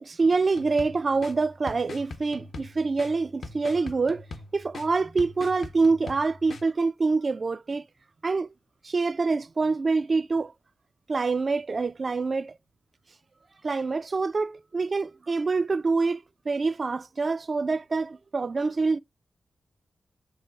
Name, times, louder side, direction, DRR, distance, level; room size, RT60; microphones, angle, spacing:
voice 1, 0.0-4.3 4.5-7.8 8.2-8.5 8.8-10.5 11.1-12.6 13.6-19.0, right 4 dB, 45° right, 0.3 m, -26 dB
sound 1, 0.5-6.6, left 3 dB, 65° left, 0.9 m, -42 dB
7.4 x 3.2 x 5.7 m
cardioid pair, 75°, 0 cm